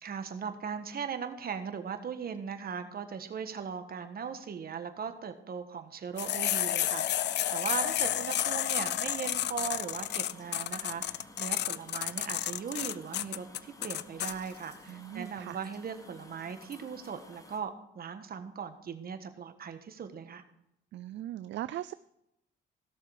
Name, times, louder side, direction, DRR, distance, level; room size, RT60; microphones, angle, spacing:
voice 1, 0.0-20.4, right 6 dB, 50° right, 8 dB, 1.5 m, -39 dB
sound 1, 6.1-17.6, left 2 dB, 15° left, 1.4 m, -53 dB
sound 2, 6.2-14.3, left 12 dB, 60° left, 0.4 m, -31 dB
voice 2, 14.9-15.6 20.9-21.9, right 13 dB, 65° right, 14 dB, 0.4 m, -39 dB
16.0 x 6.8 x 4.9 m, 0.80 s
cardioid pair, 90°, 20 cm